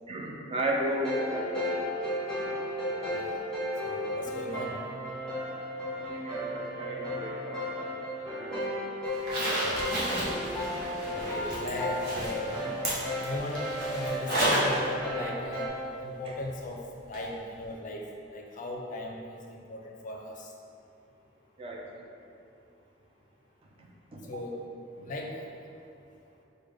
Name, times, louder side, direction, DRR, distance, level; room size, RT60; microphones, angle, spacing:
voice 1, 0.1-1.6 5.9-7.6 8.2-8.7 10.2-10.5 16.2-16.4 17.2-17.3 21.6-22.1 23.8-24.3 25.0-25.1, right 1 dB, 30° right, -1 dB, 0.4 m, -35 dB
sound 1, 0.8-15.7, left 1 dB, 5° left, 1.3 m, -34 dB
voice 2, 3.1-3.4 3.8-4.8 11.0-12.5 13.2-13.6 13.9-15.7 16.0-16.8 17.1-18.1 18.3-20.5 24.3-24.5 25.0-25.5, left 1 dB, 45° left, 0 dB, 0.5 m, -37 dB
Zipper (clothing), 9.1-14.8 15.1-15.2 17.1-17.2 17.6-17.7, right 1 dB, 55° right, 0.9 m, -32 dB
4.9 x 2.2 x 3.3 m, 2.6 s
head